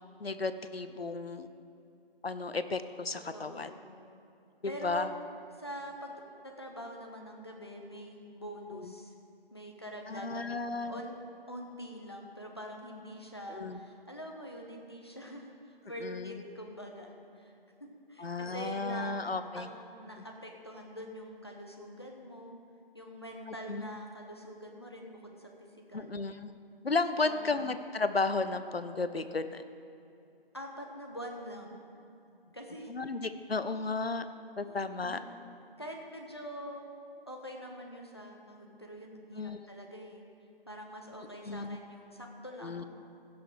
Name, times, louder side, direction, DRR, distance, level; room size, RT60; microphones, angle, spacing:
voice 1, 0.2-1.5 2.2-3.7 4.6-5.1 8.7-8.9 10.1-11.0 13.5-13.8 16.0-16.4 18.2-19.7 23.5-24.0 25.9-26.5 26.8-29.6 32.9-34.3 34.6-35.2 39.3-39.6 41.4-41.8 42.6-42.8, left 3 dB, 80° left, 11 dB, 0.7 m, -34 dB
voice 2, 3.3-3.9 4.6-5.1 5.6-6.1 6.4-9.1 9.5-11.1 11.5-15.5 15.8-17.1 17.4-17.5 17.8-22.6 22.9-25.5 25.9-26.2 27.2-27.4 30.5-31.9 32.5-32.9 34.6-35.2 35.8-36.9 37.3-40.2 40.7-42.8, equal, 25° left, 1 dB, 0.8 m, -45 dB
16.0 x 6.2 x 4.8 m, 2.7 s
figure-of-eight pair, 165°, 30 cm